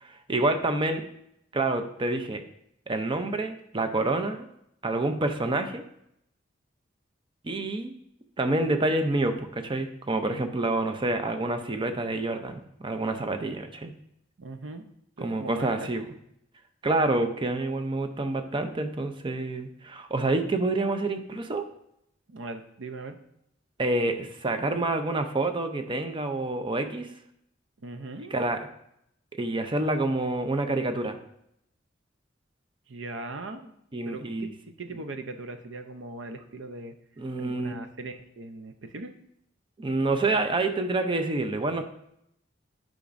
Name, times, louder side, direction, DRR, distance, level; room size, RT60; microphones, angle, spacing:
voice 1, 0.0-1.1 1.5-2.4 2.9-4.5 4.8-5.8 7.4-7.9 8.4-13.9 15.2-16.0 16.8-21.7 23.8-27.1 28.3-28.7 29.4-31.2 33.9-34.5 37.2-37.7 39.8-41.9, right 2 dB, 25° right, 7 dB, 0.6 m, -28 dB
voice 2, 14.4-14.8 15.2-15.9 22.3-23.2 27.8-28.3 32.9-33.7 34.0-36.9 37.4-39.1, right 2 dB, 70° right, 8 dB, 0.6 m, -39 dB
10.0 x 5.2 x 2.6 m, 0.76 s
head